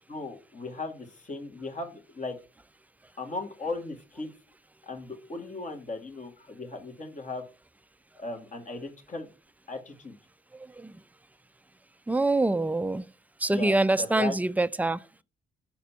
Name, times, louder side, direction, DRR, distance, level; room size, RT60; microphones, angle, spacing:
voice 1, 0.1-2.4 3.2-4.3 4.8-7.4 8.2-9.3 9.7-10.1 13.5-14.4, left 3 dB, 40° left, 2.3 m, -37 dB
voice 2, 10.5-11.0 12.1-13.1 13.4-15.0, right 2 dB, 10° right, 0.5 m, -25 dB
6.1 x 4.1 x 5.7 m
hypercardioid pair, 50°, 19 cm